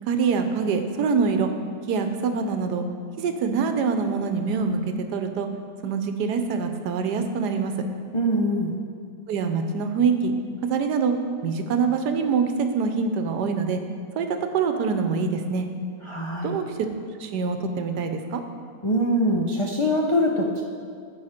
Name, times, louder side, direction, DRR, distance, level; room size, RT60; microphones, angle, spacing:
voice 1, 0.1-1.5 1.9-2.8 3.2-4.8 5.1-5.5 5.8-7.7 9.3-10.3 10.6-11.1 11.4-13.8 14.2-15.7 16.4-16.6 17.2-18.4, right 5 dB, 85° right, 6 dB, 1.3 m, -24 dB
voice 2, 8.1-8.7 16.0-16.6 18.8-20.6, equal, 55° left, -1 dB, 0.3 m, -23 dB
14.5 x 5.0 x 4.3 m, 2.3 s
omnidirectional pair, 1.7 m